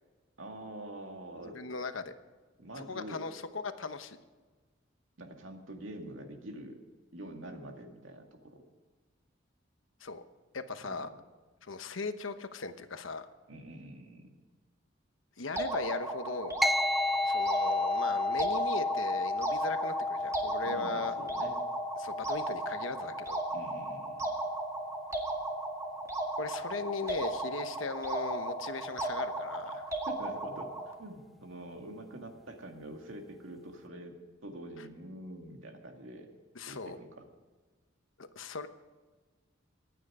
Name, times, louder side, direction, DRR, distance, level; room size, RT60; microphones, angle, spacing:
voice 1, 0.4-1.6 2.6-3.2 5.2-6.8 7.1-8.6 10.8-11.2 13.5-14.3 20.6-21.6 23.5-24.2 30.1-30.7 31.0-34.2 34.4-36.3 36.7-37.3, right 1 dB, 75° right, 3 dB, 2.2 m, -45 dB
voice 2, 1.5-2.1 2.8-4.2 10.0-10.2 10.5-11.1 11.6-13.3 15.4-16.6 17.2-21.1 22.0-23.4 26.4-29.9 34.8-34.9 36.5-37.0 38.2-38.7, left 3 dB, 80° left, 10 dB, 1.0 m, -38 dB
sound 1, 15.6-30.9, right 2 dB, 15° right, 1.9 m, -36 dB
sound 2, 16.6-26.3, left 2 dB, ahead, 0.4 m, -34 dB
24.0 x 9.3 x 4.9 m, 1.3 s
head